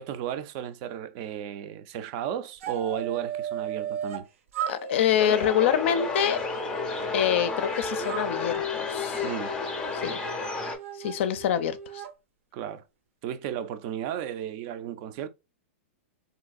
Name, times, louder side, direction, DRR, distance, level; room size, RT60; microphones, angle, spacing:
voice 1, 0.0-4.3 9.2-9.6 12.5-12.9 13.2-15.3, right 10 dB, 40° right, 0.4 m, -34 dB
sound 1, 2.6-4.3 4.5-7.6 8.0-12.1, right 10 dB, 75° right, 0.6 m, -37 dB
voice 2, 4.7-6.4 7.1-9.3 9.9-10.2 10.9-12.0, left 9 dB, 65° left, 0.4 m, -26 dB
sound 2, 5.2-10.8, left 5 dB, 10° left, 0.5 m, -31 dB
3.0 x 2.6 x 2.4 m
hypercardioid pair, 140°, 7 cm